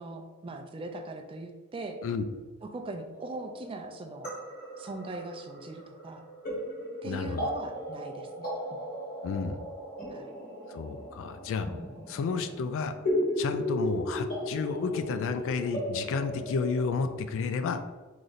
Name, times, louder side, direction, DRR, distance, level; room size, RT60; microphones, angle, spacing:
voice 1, 0.0-2.0 2.6-4.4 4.8-6.2 7.0-8.5 10.1-10.3, right 2 dB, 25° right, 5 dB, 0.3 m, -40 dB
sound 1, 3.1-16.9, equal, 40° left, 1.1 m, -36 dB
voice 2, 7.0-7.5 9.2-9.6 10.7-11.7 12.1-13.0 13.4-17.8, left 5 dB, 65° left, 9 dB, 0.3 m, -31 dB
3.1 x 2.6 x 3.9 m, 1.3 s
head